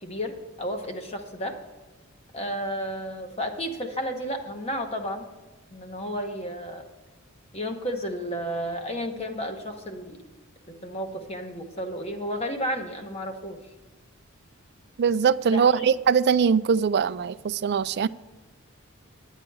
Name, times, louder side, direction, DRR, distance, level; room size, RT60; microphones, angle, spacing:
voice 1, 0.0-1.5 2.3-5.3 5.7-6.9 7.5-10.2 10.7-13.6 15.5-15.9, equal, 30° left, 1.1 m, -32 dB
voice 2, 15.0-18.1, right 6 dB, 50° right, 0.3 m, -22 dB
9.9 x 8.8 x 4.7 m
head